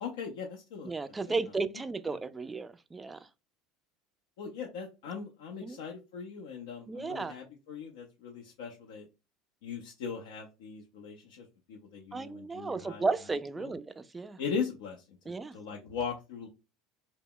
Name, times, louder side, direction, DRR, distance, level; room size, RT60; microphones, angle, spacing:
voice 1, 0.0-0.9 2.1-2.2 4.4-9.1 9.6-13.0 13.6-13.7 14.4-15.0 15.5-16.5, left 6 dB, 75° left, 0.5 m, -39 dB
voice 2, 0.8-3.2 5.6-5.8 6.9-7.4 12.1-14.4 15.3-15.6, right 3 dB, 20° right, 0.3 m, -34 dB
2.1 x 2.0 x 3.7 m
hypercardioid pair, 80°, 0 cm